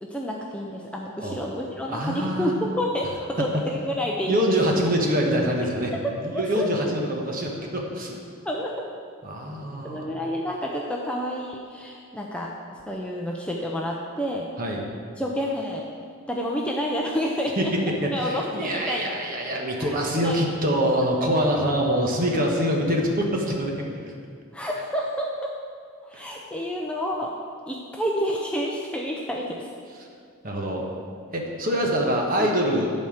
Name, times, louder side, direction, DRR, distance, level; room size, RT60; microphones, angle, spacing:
voice 1, 0.0-4.5 6.3-6.7 8.4-8.7 9.8-14.5 15.2-15.9 16.3-19.2 19.8-20.4 24.5-25.5 26.0-27.3 27.7-29.7 32.4-32.5, equal, 5° left, -2 dB, 0.5 m, -29 dB
voice 2, 1.9-2.5 4.3-5.9 6.2-8.2 9.2-10.1 14.6-14.8 17.6-17.7 18.0-24.1 26.1-26.3 30.4-30.9 31.3-32.9, equal, 40° right, 0 dB, 1.1 m, -25 dB
10.5 x 4.3 x 6.4 m, 2.3 s
head